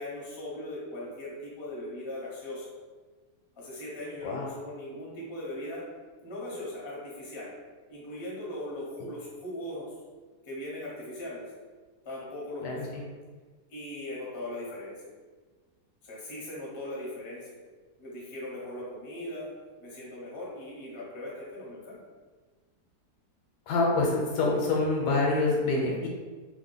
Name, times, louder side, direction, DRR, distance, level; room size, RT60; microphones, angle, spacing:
voice 1, 0.0-2.6 3.5-5.8 6.2-7.5 7.9-9.9 10.4-11.4 12.0-13.0 13.7-15.0 16.0-17.5 18.0-19.5 19.8-22.0, left 1 dB, 30° left, -6 dB, 0.6 m, -39 dB
voice 2, 23.7-26.1, left 3 dB, 75° left, -2 dB, 1.3 m, -26 dB
2.9 x 2.2 x 3.8 m, 1.4 s
omnidirectional pair, 1.8 m